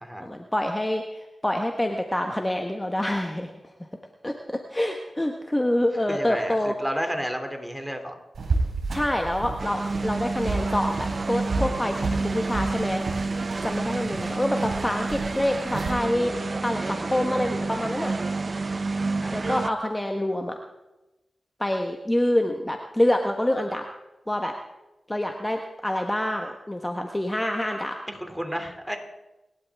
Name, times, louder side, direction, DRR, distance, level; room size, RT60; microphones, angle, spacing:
voice 1, 0.2-3.5 4.2-6.8 8.9-13.0 13.6-16.4 16.6-18.1 19.3-20.6 21.6-23.9 24.3-24.5 25.1-28.0, left 1 dB, 15° left, 4 dB, 1.3 m, -26 dB
voice 2, 6.1-8.2 13.8-14.1 19.2-19.5 28.2-29.0, equal, 5° right, 5 dB, 2.8 m, -32 dB
sound 1, 8.3-15.9, right 3 dB, 75° right, 4.1 m, -32 dB
sound 2, 9.6-19.7, right 3 dB, 50° right, 0.6 m, -29 dB
28.5 x 11.5 x 3.6 m, 1.0 s
cardioid pair, 45°, 0 cm